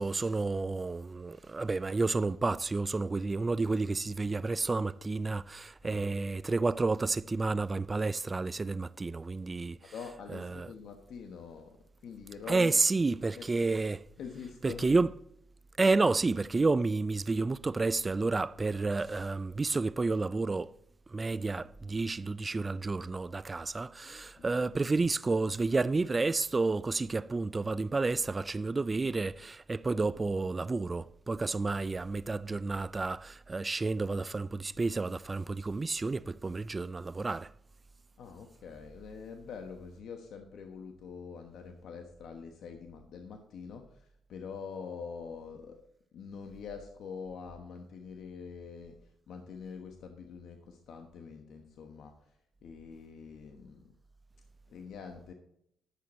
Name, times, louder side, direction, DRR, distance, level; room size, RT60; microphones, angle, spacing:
voice 1, 0.0-9.8 10.3-10.7 12.5-14.0 14.6-15.1 15.8-20.7 21.1-37.5, right 3 dB, 25° right, 0.4 m, -30 dB
voice 2, 9.8-11.7 12.0-12.7 13.4-13.5 14.2-14.9 24.4-24.6 38.2-45.8 46.1-49.0 49.3-52.1 52.6-53.9 54.7-55.3, left 6 dB, 70° left, 1.2 m, -45 dB
11.5 x 7.8 x 4.2 m
cardioid pair, 90°, 0 cm